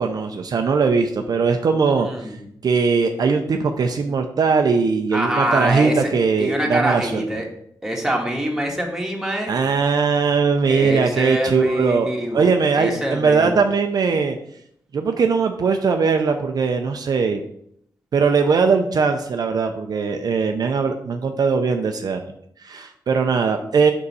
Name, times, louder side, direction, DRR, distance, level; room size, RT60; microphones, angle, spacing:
voice 1, 0.0-2.1 2.6-7.2 9.5-14.4 14.9-17.4 18.1-22.2 22.6-23.9, right 5 dB, 55° right, 5 dB, 0.5 m, -20 dB
voice 2, 2.0-2.4 5.1-6.1 6.4-7.5 7.8-9.5 10.6-12.5 12.7-13.6, right 1 dB, 5° right, -1 dB, 1.5 m, -24 dB
5.5 x 5.4 x 4.1 m, 0.71 s
wide cardioid pair, 110°, 8 cm